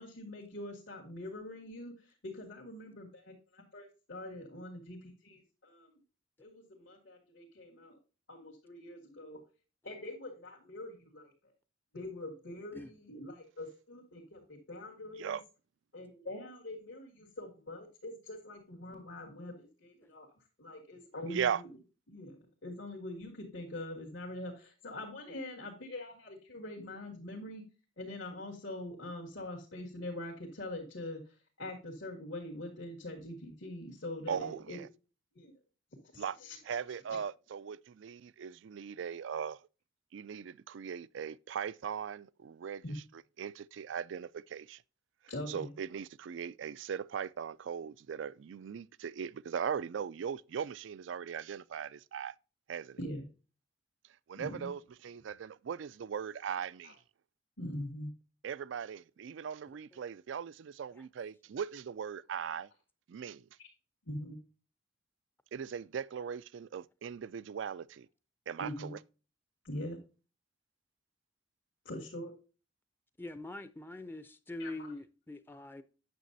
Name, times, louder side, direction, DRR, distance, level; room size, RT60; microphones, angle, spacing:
voice 1, 0.0-6.0 6.4-8.0 8.3-9.4 9.8-11.3 11.9-15.4 15.9-20.3 20.6-21.6 22.1-27.6 28.0-34.8 35.3-35.5 36.1-36.6 37.1-37.2 42.8-42.9 45.3-45.7 53.0-53.3 54.4-54.7 56.8-56.9 57.6-58.1 63.6-63.7 64.0-64.4 68.6-68.9 69.6-70.0 71.8-72.3 74.6-74.9, left 1 dB, 75° left, 2.3 m, -44 dB
voice 2, 21.3-21.6 34.3-34.9 36.2-36.4 36.6-39.6 40.1-42.8 43.4-44.8 45.5-52.4 52.7-53.0 54.3-57.0 58.4-62.7 63.1-63.5 65.5-68.1 68.5-69.0, right 7 dB, 70° right, 0.4 m, -39 dB
voice 3, 73.2-75.8, left 2 dB, 10° left, 0.5 m, -43 dB
9.3 x 6.7 x 2.7 m
head